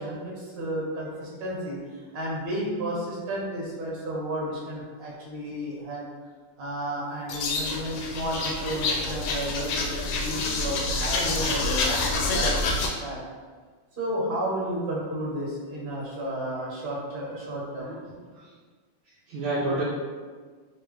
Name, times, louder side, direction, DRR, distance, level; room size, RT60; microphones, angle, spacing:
voice 1, 0.0-6.0 6.6-13.2 14.0-18.1, right 1 dB, 50° right, -5 dB, 1.6 m, -32 dB
sound 1, 7.3-12.9, left 3 dB, 90° left, 1.5 m, -27 dB
voice 2, 17.8-18.5 19.3-19.8, right 2 dB, 70° right, -6 dB, 1.3 m, -30 dB
3.7 x 3.0 x 3.3 m, 1.5 s
omnidirectional pair, 2.4 m